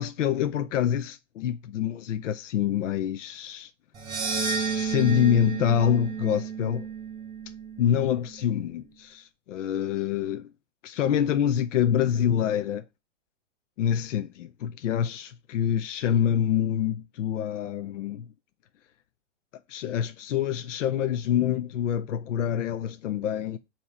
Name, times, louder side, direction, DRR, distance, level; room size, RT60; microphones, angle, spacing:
voice 1, 0.0-3.7 4.7-6.9 7.8-10.5 10.8-12.8 13.8-18.3 19.7-23.6, left 9 dB, 75° left, 0.7 m, -26 dB
sound 1, 3.9-8.3, right 5 dB, 10° right, 1.6 m, -32 dB
7.1 x 3.0 x 4.8 m
hypercardioid pair, 165°, 37 cm